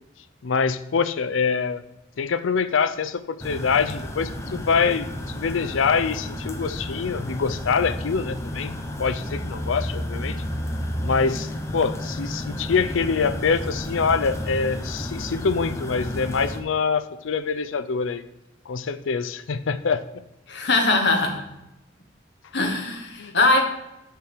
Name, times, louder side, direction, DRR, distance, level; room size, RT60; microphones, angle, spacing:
voice 1, 0.4-1.8 2.2-10.4 11.0-18.2 18.7-20.0 23.2-23.3, left 5 dB, 75° left, 12 dB, 0.5 m, -25 dB
sound 1, 3.4-16.6, equal, 15° left, 0.7 m, -32 dB
voice 2, 20.5-21.5 22.5-23.6, left 2 dB, 60° left, 3 dB, 1.3 m, -21 dB
6.9 x 4.6 x 6.6 m, 0.89 s
head